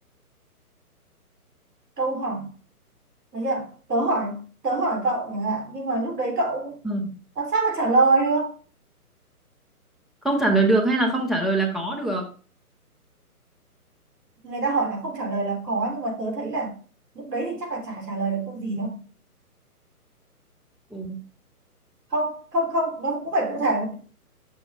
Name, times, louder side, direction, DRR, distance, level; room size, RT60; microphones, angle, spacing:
voice 1, 2.0-2.5 3.3-6.8 7.4-8.5 14.4-16.8 17.1-19.0 22.1-23.9, right 2 dB, 90° right, 3.4 m, -25 dB
voice 2, 6.8-7.2 10.2-12.3 20.9-21.2, right 2 dB, ahead, 0.3 m, -23 dB
6.3 x 5.7 x 3.5 m
hypercardioid pair, 165°, 46 cm